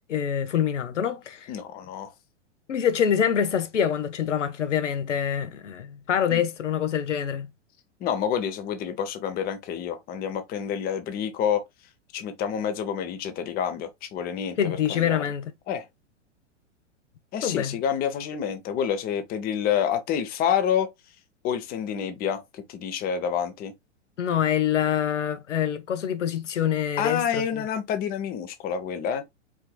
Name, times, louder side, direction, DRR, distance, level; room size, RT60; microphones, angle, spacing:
voice 1, 0.1-1.5 2.7-7.5 14.6-15.5 17.4-17.8 24.2-27.7, left 9 dB, 80° left, 0.8 m, -25 dB
voice 2, 1.5-2.1 6.3-6.4 8.0-11.6 12.1-15.2 15.7-15.9 17.3-20.9 21.4-23.7 27.0-29.2, left 8 dB, 25° left, 0.7 m, -28 dB
4.9 x 2.6 x 2.2 m
hypercardioid pair, 110°, 36 cm